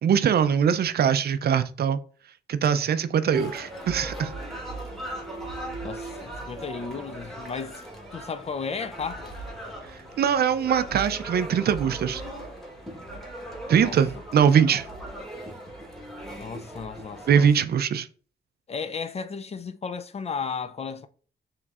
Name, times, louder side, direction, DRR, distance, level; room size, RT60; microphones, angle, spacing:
voice 1, 0.0-2.0 2.5-4.3 10.2-12.2 13.7-14.9 17.3-18.1, right 8 dB, 55° right, 0.4 m, -22 dB
sound 1, 3.3-17.5, right 1 dB, ahead, 1.3 m, -38 dB
voice 2, 5.8-7.8 8.1-9.3 13.8-14.0 16.4-17.5 18.7-21.1, left 5 dB, 35° left, 0.4 m, -34 dB
5.9 x 3.1 x 2.4 m
cardioid pair, 100°, 20 cm